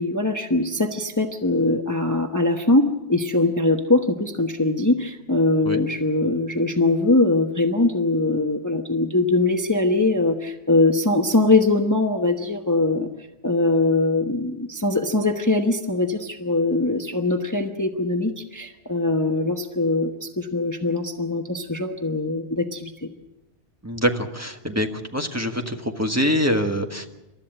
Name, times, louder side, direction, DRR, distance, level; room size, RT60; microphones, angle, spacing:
voice 1, 0.0-13.1 13.4-23.1, left 2 dB, 20° left, 5 dB, 1.1 m, -22 dB
voice 2, 23.8-24.9 25.1-27.1, equal, 15° right, 4 dB, 1.5 m, -24 dB
28.0 x 13.5 x 8.9 m, 1.0 s
omnidirectional pair, 1.1 m